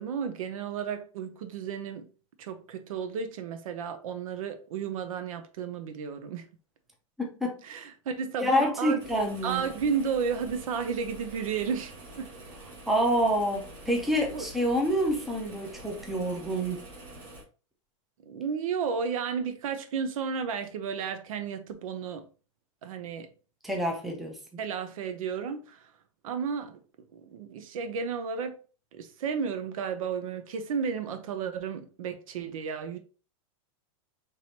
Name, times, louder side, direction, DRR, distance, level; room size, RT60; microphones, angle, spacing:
voice 1, 0.0-2.1 2.4-6.5 7.6-9.0 9.4-12.3 14.3-14.5 18.2-22.3 22.8-23.3 24.6-25.9 26.2-28.6 28.9-33.0, right 6 dB, 80° right, 0.7 m, -33 dB
voice 2, 7.2-7.6 8.4-9.6 12.9-16.8 23.6-24.4, equal, ahead, 0.5 m, -27 dB
sound 1, 9.0-17.4, right 1 dB, 25° right, 1.5 m, -46 dB
4.8 x 3.0 x 2.8 m
supercardioid pair, 165°, 17 cm